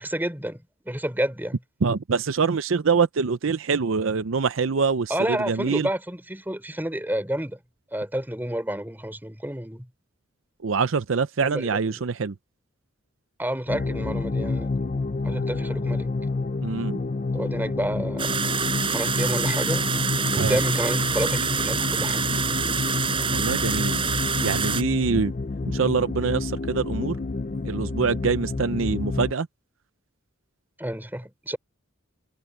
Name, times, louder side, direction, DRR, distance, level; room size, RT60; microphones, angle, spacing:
voice 1, 0.0-1.6 5.1-7.6 7.9-9.9 11.4-12.0 13.4-14.7 15.2-16.1 17.3-18.4 18.9-19.9 20.3-22.3 30.8-31.6, right 1 dB, 10° right, 3.7 m, -30 dB
voice 2, 1.8-5.9 10.6-12.3 16.6-17.0 20.4-20.6 23.3-24.1 24.4-25.3 25.7-27.2 27.6-29.5, right 5 dB, 70° right, 0.6 m, -24 dB
sound 1, 13.7-29.3, left 3 dB, 35° left, 0.5 m, -29 dB
sound 2, 18.2-24.8, right 6 dB, 25° right, 4.9 m, -26 dB
head